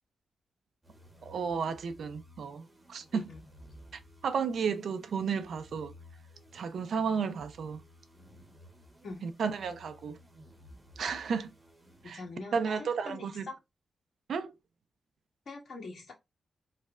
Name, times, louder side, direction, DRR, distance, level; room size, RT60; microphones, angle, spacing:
sound 1, 0.8-12.6, equal, 10° right, 1.0 m, -56 dB
voice 1, 1.2-3.2 4.2-5.9 6.5-7.8 9.2-10.2 11.0-11.5 12.1-12.2 12.5-13.5 14.3-14.5, right 6 dB, 70° right, 0.4 m, -33 dB
voice 2, 3.1-3.4 9.0-9.3 12.0-13.6 15.4-16.1, left 3 dB, 55° left, 1.6 m, -43 dB
3.1 x 2.1 x 3.6 m
wide cardioid pair, 130°, 0 cm